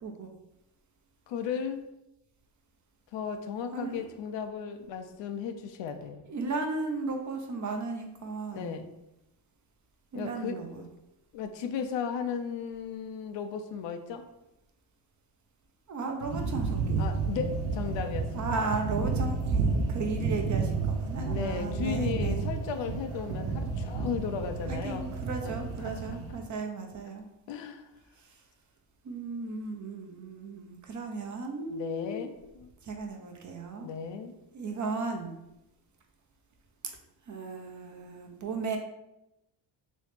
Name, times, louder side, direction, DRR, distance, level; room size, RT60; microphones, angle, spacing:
voice 1, 1.3-1.8 3.1-6.2 8.5-8.9 10.1-10.9 11.3-14.2 17.0-18.7 21.2-25.0 25.4-25.5 25.8-26.4 27.5-27.9 31.7-32.7 33.8-34.3, left 6 dB, 65° left, 7 dB, 0.6 m, -35 dB
voice 2, 3.7-4.1 6.3-8.8 10.1-10.9 15.9-17.1 18.3-22.5 24.7-27.2 28.2-28.4 29.0-32.2 32.8-33.9 34.5-35.4 37.3-38.8, right 3 dB, 40° right, 3 dB, 0.7 m, -35 dB
sound 1, 16.2-26.4, right 4 dB, 80° right, 1.0 m, -31 dB
3.1 x 3.0 x 3.3 m, 0.89 s
supercardioid pair, 80°, 48 cm